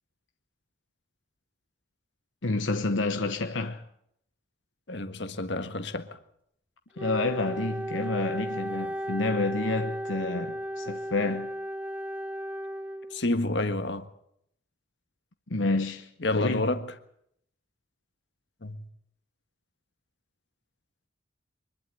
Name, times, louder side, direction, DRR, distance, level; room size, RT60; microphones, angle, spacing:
voice 1, 2.4-3.8 7.0-11.5 15.5-16.6, left 2 dB, 85° left, 1.1 m, -29 dB
voice 2, 4.9-6.2 13.1-14.1 16.2-16.9 18.6-18.9, left 2 dB, 65° left, 1.6 m, -29 dB
Wind instrument woodwind instrument, 7.0-13.3, equal, 10° right, 1.0 m, -35 dB
24.5 x 12.0 x 9.8 m
head